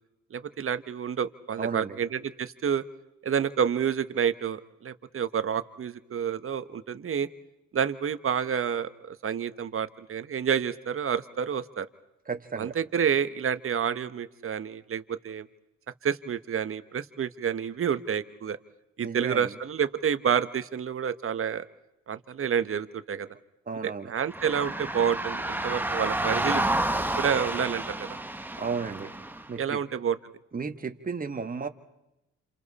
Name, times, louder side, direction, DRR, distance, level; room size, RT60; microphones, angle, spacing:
voice 1, 0.3-2.8 3.2-7.3 7.7-11.9 12.6-15.5 16.0-18.6 19.0-21.6 22.1-23.3 23.8-26.6 27.2-28.1 29.6-30.2, right 7 dB, 45° right, 12 dB, 1.3 m, -29 dB
voice 2, 1.6-2.0 12.3-12.7 19.0-19.5 23.7-24.1 28.6-29.1 29.5-29.8 30.5-31.7, right 5 dB, 30° right, 6 dB, 1.7 m, -33 dB
sound 1, 24.3-29.5, right 1 dB, 5° right, 1.2 m, -30 dB
29.5 x 27.5 x 4.3 m, 0.92 s
cardioid pair, 90°, 30 cm